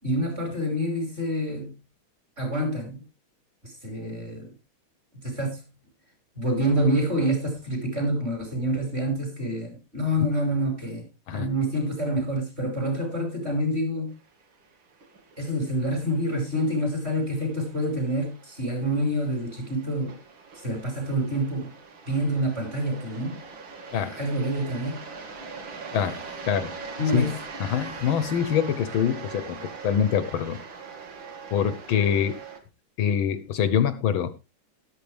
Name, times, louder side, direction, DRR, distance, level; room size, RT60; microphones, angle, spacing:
voice 1, 0.0-1.7 2.4-3.0 3.6-4.5 5.2-5.6 6.4-11.0 11.3-14.1 15.4-20.2 20.5-21.7 22.1-23.4 24.1-25.0 27.0-27.3, equal, 30° right, 5.9 m, -27 dB
sound 1, 14.3-32.6, right 4 dB, 65° right, 2.7 m, -42 dB
voice 2, 27.6-30.6 31.5-32.4 33.0-34.3, left 8 dB, 75° left, 1.7 m, -24 dB
13.0 x 12.0 x 3.4 m
omnidirectional pair, 2.3 m